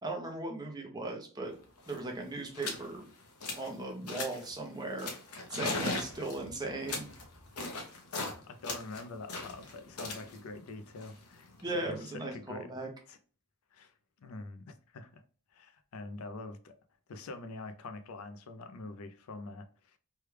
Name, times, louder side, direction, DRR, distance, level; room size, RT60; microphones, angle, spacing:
voice 1, 0.0-1.5 1.9-3.1 3.5-5.1 5.5-7.1 11.6-12.9, right 2 dB, 20° right, 0.7 m, -37 dB
sound 1, 1.5-1.6 1.8-2.1 2.5-2.9 3.2-3.7 4.1-4.5 5.0-8.4 8.6-11.7, left 3 dB, 90° left, 0.8 m, -39 dB
voice 2, 8.5-11.5 11.8-12.7 13.1-13.2 13.7-15.2 15.5-16.7 17.1-20.0, left 3 dB, 70° left, 0.5 m, -45 dB
3.2 x 2.3 x 3.2 m
head